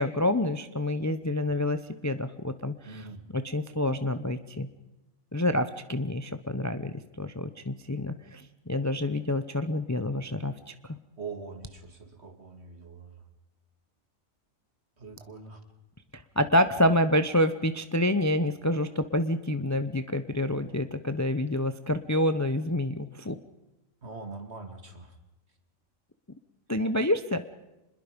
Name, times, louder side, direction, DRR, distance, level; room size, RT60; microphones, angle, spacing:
voice 1, 0.0-1.8 2.0-3.1 3.3-4.7 5.3-10.7 16.4-23.4 26.7-27.4, left 1 dB, 15° left, 10 dB, 0.7 m, -27 dB
voice 2, 2.9-3.2 11.2-13.1 15.0-15.6 24.0-25.1, right 4 dB, 50° right, 7 dB, 2.7 m, -42 dB
26.0 x 21.5 x 5.3 m, 0.97 s
omnidirectional pair, 1.4 m